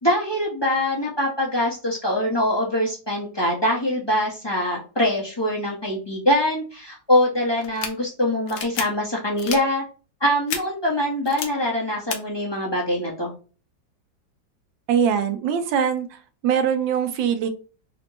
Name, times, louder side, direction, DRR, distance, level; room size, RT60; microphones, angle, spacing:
voice 1, 0.0-9.8 10.2-13.3, left 1 dB, 25° left, -4 dB, 0.6 m, -23 dB
sound 1, 7.6-7.9 8.5-8.8 9.4-9.6 10.5-10.6 11.3-11.5 12.1-12.2, left 7 dB, 75° left, 1.3 m, -29 dB
voice 2, 14.9-16.1 16.4-17.5, right 8 dB, 85° right, 8 dB, 1.4 m, -22 dB
4.1 x 2.1 x 2.9 m, 0.36 s
omnidirectional pair, 2.0 m